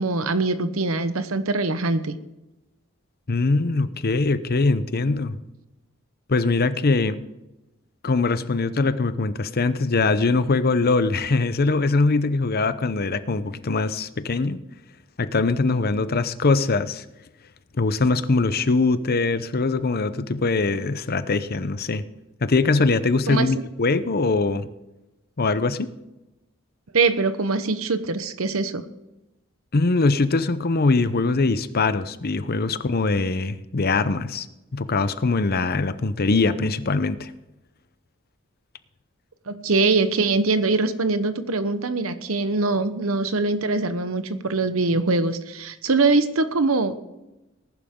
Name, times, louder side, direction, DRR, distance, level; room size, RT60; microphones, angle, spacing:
voice 1, 0.0-2.1 23.3-23.5 26.9-28.8 39.5-46.9, right 3 dB, 80° right, 11 dB, 1.0 m, -23 dB
voice 2, 3.3-5.4 6.3-7.2 8.0-14.6 15.2-17.0 17.7-22.0 22.4-24.7 25.4-25.9 29.7-34.5 34.7-37.3, left 3 dB, 50° left, 13 dB, 0.7 m, -22 dB
19.5 x 11.0 x 3.8 m, 0.98 s
head